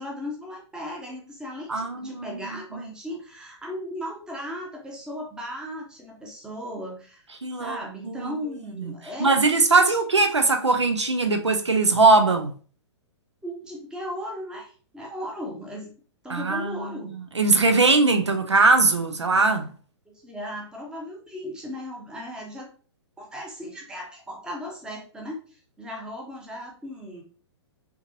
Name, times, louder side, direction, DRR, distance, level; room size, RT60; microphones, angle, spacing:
voice 1, 0.0-7.3 7.6-9.4 9.8-10.0 13.4-15.9 16.2-17.1 20.1-22.7 23.2-27.2, equal, 5° right, 0.7 m, -36 dB
voice 2, 1.7-2.4 2.7-2.9 7.4-7.8 8.0-8.3 8.8-8.9 9.2-12.5 16.3-19.7, right 3 dB, 80° right, 0.5 m, -21 dB
3.5 x 2.9 x 2.5 m
figure-of-eight pair, 115°, 14 cm